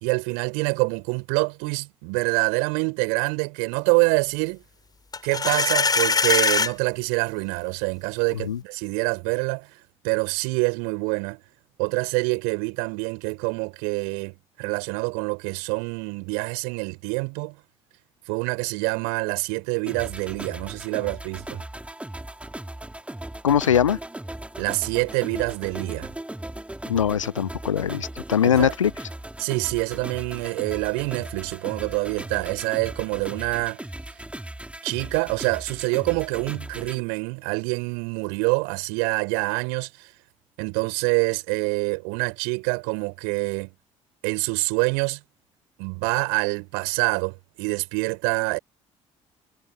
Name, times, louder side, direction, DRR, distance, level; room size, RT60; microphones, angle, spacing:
voice 1, 0.0-4.6 5.2-9.8 10.0-11.4 11.8-17.6 18.3-21.6 24.6-26.1 28.4-28.7 29.4-33.8 34.8-40.1 40.6-43.7 44.2-45.2 45.8-48.6, right 40 dB or more, 65° right, 4.5 m, -26 dB
sound 1, 5.1-6.7, left 4 dB, 25° left, 4.5 m, -21 dB
sound 2, 19.9-37.0, right 1 dB, 10° right, 4.7 m, -38 dB
voice 2, 23.4-24.0 26.9-28.9, left 9 dB, 85° left, 0.6 m, -21 dB
figure-of-eight pair, 50°, 16 cm